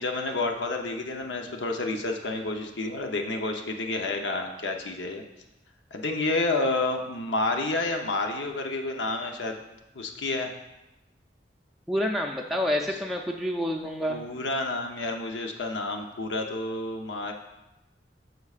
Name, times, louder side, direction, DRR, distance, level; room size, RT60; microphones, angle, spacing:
voice 1, 0.0-5.2 5.9-9.6 9.9-10.5 14.1-17.3, left 2 dB, 90° left, 3 dB, 0.8 m, -29 dB
voice 2, 11.9-14.2, left 1 dB, ahead, -1 dB, 0.4 m, -28 dB
13.5 x 4.7 x 2.4 m, 0.97 s
head